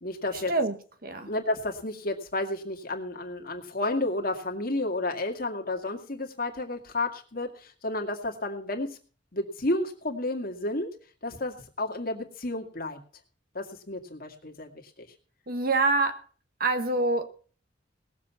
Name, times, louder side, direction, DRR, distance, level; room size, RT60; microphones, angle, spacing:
voice 1, 0.0-0.5 1.2-9.0 9.3-10.9 11.2-13.0 13.5-15.1, left 2 dB, 50° left, 2.1 m, -31 dB
voice 2, 15.5-16.2 16.6-17.3, right 3 dB, 50° right, 1.4 m, -25 dB
18.5 x 7.4 x 5.8 m
head